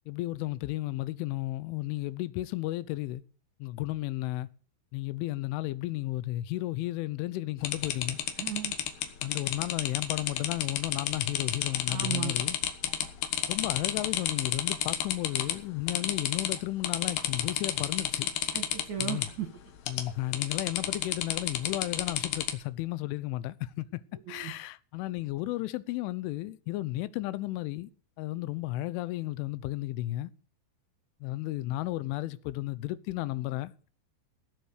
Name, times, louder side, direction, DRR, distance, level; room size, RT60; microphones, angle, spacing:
voice 1, 0.1-3.2 3.6-4.5 4.9-8.2 9.2-12.6 13.5-18.3 19.0-19.3 19.9-24.0 24.3-27.9 28.2-30.3 31.2-33.9, left 17 dB, 90° left, 3.2 m, -33 dB
sound 1, 7.6-15.6 15.9-16.6 16.8-19.3 19.9-20.1 20.3-22.5, left 10 dB, 65° left, 2.9 m, -30 dB
voice 2, 8.4-8.8 11.9-12.3 18.5-19.5 24.3-24.5, right 10 dB, 55° right, 2.3 m, -35 dB
16.5 x 8.0 x 6.6 m
omnidirectional pair, 5.5 m